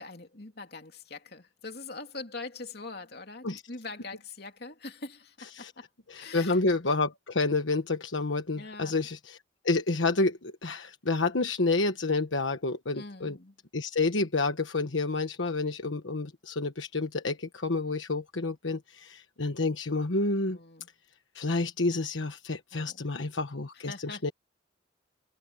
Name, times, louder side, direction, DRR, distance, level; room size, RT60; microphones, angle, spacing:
voice 1, 0.0-5.9 6.1-6.6 8.6-9.0 12.9-13.5 20.5-20.9 22.7-23.0 23.7-24.3, left 3 dB, 55° left, 2.9 m, -43 dB
voice 2, 6.1-9.4 9.6-13.4 13.7-20.6 21.3-24.3, left 3 dB, 80° left, 1.3 m, -29 dB
head